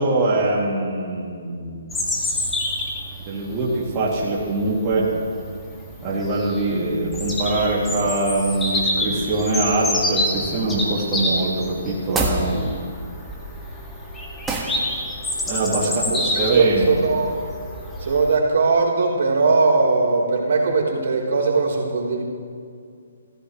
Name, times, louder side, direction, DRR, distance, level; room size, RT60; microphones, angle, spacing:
voice 1, 0.0-1.9 3.3-5.1 6.0-12.8 15.5-16.9, right 2 dB, 25° right, -6 dB, 2.8 m, -23 dB
Bird vocalization bird call bird song, 1.9-18.3, left 1 dB, 10° left, 2.1 m, -28 dB
sound 1, 12.1-12.5 14.5-14.8, right 3 dB, 10° right, 1.7 m, -23 dB
voice 2, 15.8-16.2 16.5-17.3 18.0-22.2, right 4 dB, 65° right, -4 dB, 3.9 m, -20 dB
26.0 x 15.0 x 3.3 m, 2.3 s
hypercardioid pair, 150°, 0 cm